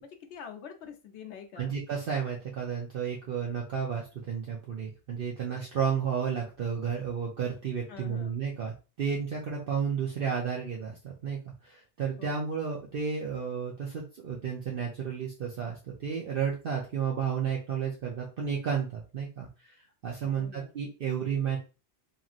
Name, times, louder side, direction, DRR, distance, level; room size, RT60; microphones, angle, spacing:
voice 1, 0.0-1.7 7.9-8.4 12.2-12.5 20.2-20.7, left 7 dB, 80° left, 5 dB, 0.9 m, -46 dB
voice 2, 1.6-19.7 20.0-21.6, right 7 dB, 60° right, -3 dB, 0.8 m, -32 dB
2.9 x 2.6 x 2.5 m, 0.31 s
omnidirectional pair, 1.2 m